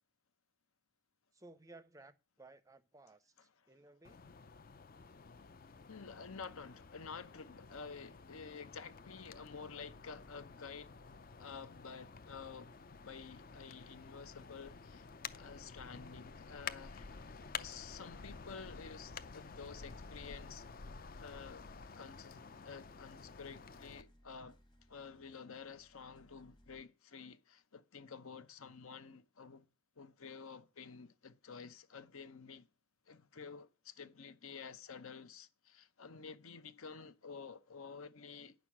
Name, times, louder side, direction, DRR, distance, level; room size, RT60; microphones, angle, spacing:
voice 1, 1.3-4.2, right 2 dB, 15° right, 0.5 m, -58 dB
sound 1, 4.0-24.0, left 5 dB, 40° left, 0.5 m, -51 dB
voice 2, 5.9-10.9 11.4-12.7 13.0-17.1 17.5-20.6 21.2-21.7 22.0-24.6 24.9-29.7 30.0-32.7 33.1-38.5, left 5 dB, 70° left, 0.8 m, -50 dB
sound 2, 7.0-26.8, equal, 20° left, 1.1 m, -67 dB
9.6 x 6.3 x 7.3 m
head